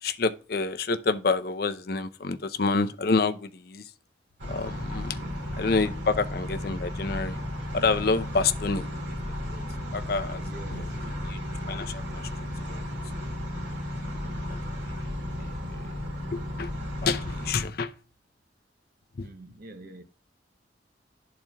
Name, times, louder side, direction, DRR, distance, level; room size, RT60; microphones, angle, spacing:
voice 1, 0.0-3.9 4.5-5.2 5.6-7.4 7.7-8.9 9.3-9.6 9.9-10.4 10.7-11.4 11.7-12.3 12.7-12.8 14.5-14.6 15.2-15.3 15.7-15.8 16.3-16.7 17.0-17.9 19.2-19.3, left 4 dB, 55° left, 0.6 m, -28 dB
sound 1, 4.4-17.6, left 1 dB, 75° right, 2.1 m, -34 dB
voice 2, 10.4-11.3 19.2-20.0, right 2 dB, 55° right, 0.8 m, -46 dB
12.0 x 4.3 x 2.3 m
head